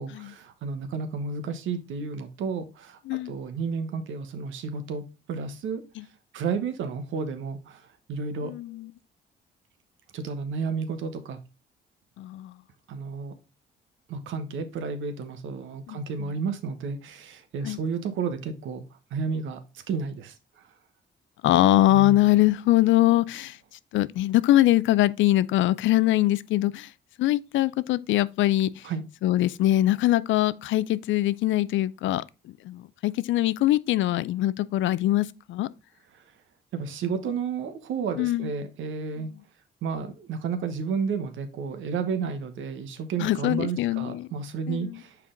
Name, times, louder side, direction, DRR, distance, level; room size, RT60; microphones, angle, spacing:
voice 1, 0.0-3.0 3.2-5.8 6.3-8.5 10.1-11.4 12.9-13.3 14.1-18.8 19.1-19.6 19.9-20.6 21.9-22.2 28.8-29.0 36.1-36.2 36.7-39.3 39.8-45.2, right 5 dB, 80° right, 1.0 m, -32 dB
voice 2, 8.4-8.9 12.2-12.5 15.9-16.3 17.6-17.8 21.4-23.6 23.9-26.9 27.2-28.7 29.2-32.2 32.7-35.7 38.2-38.5 43.2-44.3 44.7-44.9, left 15 dB, 75° left, 0.4 m, -23 dB
5.7 x 4.6 x 3.7 m
cardioid pair, 90°, 20 cm